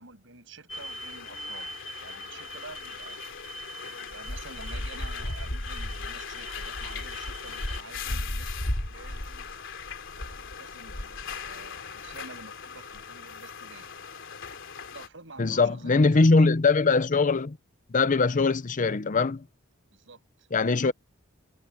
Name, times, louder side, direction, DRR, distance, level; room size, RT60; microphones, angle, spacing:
voice 1, 0.0-3.2 4.0-8.5 8.8-9.5 10.2-13.9 14.9-16.5 19.9-20.9, right 3 dB, 70° right, 8.0 m, -49 dB
sound 1, 0.7-15.1, left 2 dB, 65° left, 3.5 m, -36 dB
voice 2, 15.4-17.6 17.9-19.4 20.5-20.9, left 3 dB, 40° left, 0.7 m, -22 dB
head